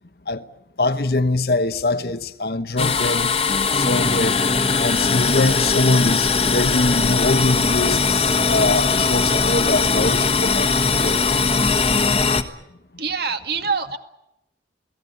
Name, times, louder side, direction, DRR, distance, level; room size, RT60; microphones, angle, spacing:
voice 1, 0.8-3.3 3.7-4.4 4.8-11.3, left 2 dB, 55° left, 1.1 m, -23 dB
sound 1, 2.8-12.4, left 4 dB, 30° left, 1.4 m, -20 dB
voice 2, 13.0-14.0, right 5 dB, 60° right, 2.1 m, -25 dB
28.5 x 18.0 x 8.2 m
head